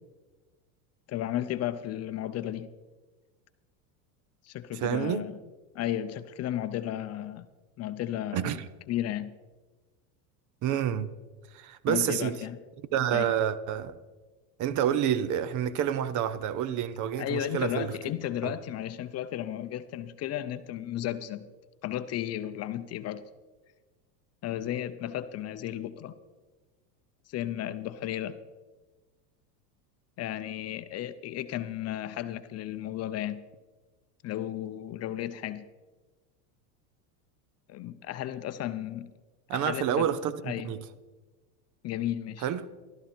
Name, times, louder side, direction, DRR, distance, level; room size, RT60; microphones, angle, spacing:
voice 1, 1.1-2.7 4.4-5.4 5.7-7.5 7.8-8.6 8.9-9.3 11.9-12.6 13.1-13.3 17.2-21.4 21.8-23.2 24.4-26.1 27.3-28.4 30.2-33.4 34.2-35.6 37.7-39.1 39.5-40.1 40.4-40.7 41.8-42.5, left 12 dB, 35° left, 0.7 m, -34 dB
voice 2, 4.8-5.2 8.3-8.7 10.6-11.1 11.5-12.4 12.9-14.0 14.6-17.9 18.4-18.5 39.5-40.8 42.4-42.6, right 9 dB, 40° right, 0.8 m, -28 dB
14.0 x 13.0 x 4.4 m
supercardioid pair, 120°, 46 cm